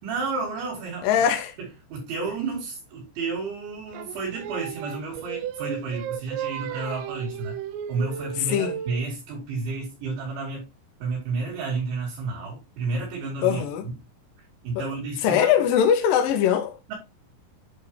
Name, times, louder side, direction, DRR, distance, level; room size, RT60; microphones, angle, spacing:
voice 1, 0.0-1.1 1.9-7.6 7.9-10.6 11.0-13.6 14.6-15.5 16.9-17.0, right 4 dB, 65° right, 5.4 m, -31 dB
voice 2, 1.0-1.6 8.5-8.8 13.4-13.8 14.8-14.9 15.2-16.8, left 9 dB, 75° left, 2.1 m, -21 dB
Singing, 3.9-9.1, right 9 dB, 85° right, 3.3 m, -34 dB
10.5 x 4.9 x 3.3 m
omnidirectional pair, 5.8 m